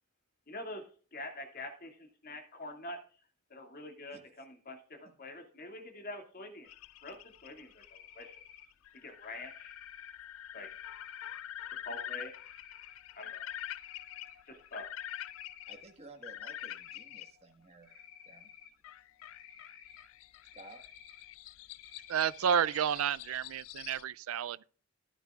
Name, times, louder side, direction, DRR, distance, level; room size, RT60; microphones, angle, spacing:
voice 1, 0.5-0.8 1.1-3.0 3.5-6.7 7.0-7.2 7.4-8.3 8.9-9.7 10.5-10.7 11.7-12.3 13.2-13.4 14.5-14.9, left 1 dB, 45° left, 2.4 m, -45 dB
voice 2, 4.1-4.4 15.6-17.9 18.2-18.5 20.5-20.8, right 2 dB, 30° right, 1.6 m, -54 dB
sound 1, 6.7-17.3 18.8-24.0, left 12 dB, 70° left, 0.4 m, -46 dB
Cricket, 7.8-8.7 9.2-10.1 10.5-11.4 12.1-12.9 13.4-14.4 14.7-15.9 16.5-17.3 17.8-18.7 19.2-20.0 20.4-21.2 21.7-22.5, left 9 dB, 85° left, 2.2 m, -54 dB
voice 3, 22.1-24.6, right 8 dB, 75° right, 0.4 m, -31 dB
14.0 x 11.5 x 2.4 m
head